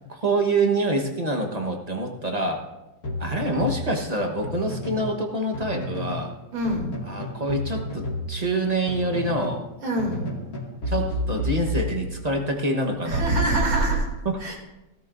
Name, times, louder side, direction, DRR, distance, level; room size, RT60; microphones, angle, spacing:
voice 1, 0.1-2.6 3.2-6.3 7.1-9.6 10.9-13.2 13.5-13.6 14.2-14.4, right 2 dB, 25° right, 2 dB, 0.9 m, -26 dB
sound 1, 3.0-5.2 5.5-6.3 6.6-9.6 10.0-12.4, left 1 dB, 45° left, 2.5 m, -31 dB
voice 2, 6.5-6.9 9.8-10.2 13.1-14.1 14.4-14.6, right 2 dB, 75° right, -1 dB, 3.7 m, -24 dB
17.0 x 13.0 x 2.6 m, 0.99 s
omnidirectional pair, 2.3 m